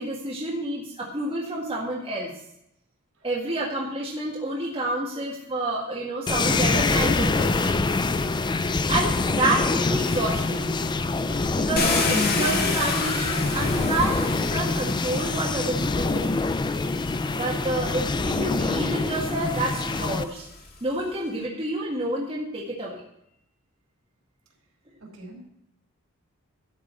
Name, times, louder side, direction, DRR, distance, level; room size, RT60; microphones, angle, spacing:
voice 1, 0.0-2.3 3.2-7.8 8.9-10.7 11.5-16.4 17.3-20.5 20.8-23.0, right 2 dB, 25° right, -4 dB, 2.0 m, -29 dB
sound 1, 6.3-20.2, left 3 dB, 20° left, 0.4 m, -25 dB
Car, 11.8-15.9 16.8-16.9 17.4-20.7, left 3 dB, 45° left, 2.0 m, -30 dB
voice 2, 25.0-25.5, right 1 dB, 70° right, -1 dB, 4.7 m, -44 dB
13.0 x 5.2 x 8.1 m, 0.77 s
head